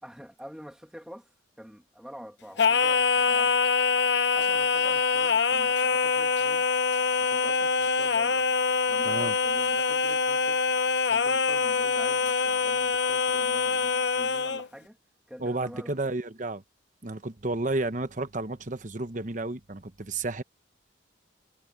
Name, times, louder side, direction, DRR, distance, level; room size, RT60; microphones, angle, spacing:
voice 1, 0.0-1.3 1.6-3.6 4.3-6.7 7.2-8.5 8.9-10.7 11.1-15.0 15.3-16.0, equal, 5° right, 2.5 m, -46 dB
Singing, 2.6-14.7, left 5 dB, 65° left, 0.9 m, -24 dB
voice 2, 9.0-9.3 15.4-16.6 17.0-20.4, right 2 dB, 40° right, 1.0 m, -31 dB
head